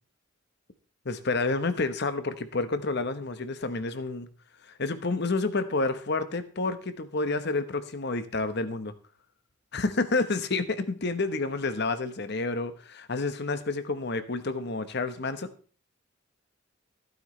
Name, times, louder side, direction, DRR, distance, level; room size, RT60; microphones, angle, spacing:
voice 1, 1.0-4.3 4.8-8.9 9.7-15.5, left 3 dB, 55° left, 11 dB, 1.1 m, -29 dB
15.5 x 9.3 x 3.3 m, 0.41 s
head